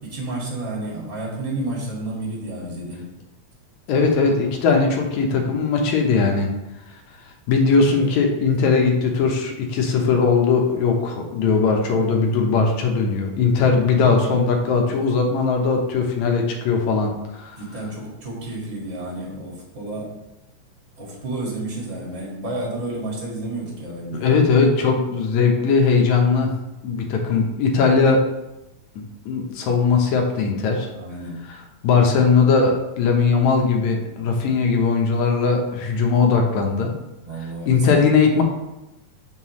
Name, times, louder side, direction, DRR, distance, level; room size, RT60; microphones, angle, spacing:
voice 1, 0.0-3.1 8.0-8.1 13.7-13.9 14.9-15.0 17.6-20.1 21.0-24.3 30.9-31.4 37.2-38.0, right 2 dB, 25° right, -4 dB, 2.1 m, -31 dB
voice 2, 3.9-6.5 7.5-17.6 24.2-26.5 26.8-28.2 29.0-30.9 31.8-36.9 37.7-38.4, left 4 dB, 70° left, 2 dB, 2.2 m, -19 dB
7.7 x 5.6 x 3.1 m, 0.95 s
omnidirectional pair, 3.6 m